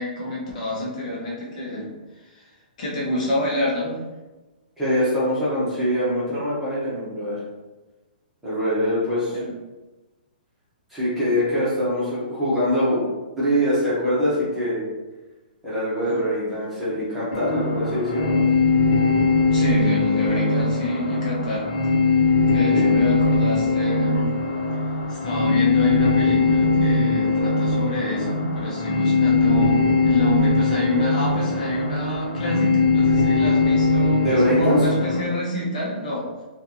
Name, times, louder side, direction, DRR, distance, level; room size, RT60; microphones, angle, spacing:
voice 1, 0.0-1.9 2.3-2.5 2.8-4.0 9.3-9.5 16.1-16.2 19.5-21.7 22.5-24.3 25.1-36.3, left 1 dB, 50° left, -5 dB, 1.0 m, -28 dB
voice 2, 4.8-7.4 8.4-9.4 10.9-13.0 13.4-14.8 15.6-18.4 22.7-23.0 34.2-34.8, equal, 5° right, -12 dB, 1.0 m, -23 dB
sound 1, 17.3-35.2, left 3 dB, 85° left, 0.8 m, -20 dB
4.3 x 2.5 x 2.8 m, 1.2 s
hypercardioid pair, 170°, 5 cm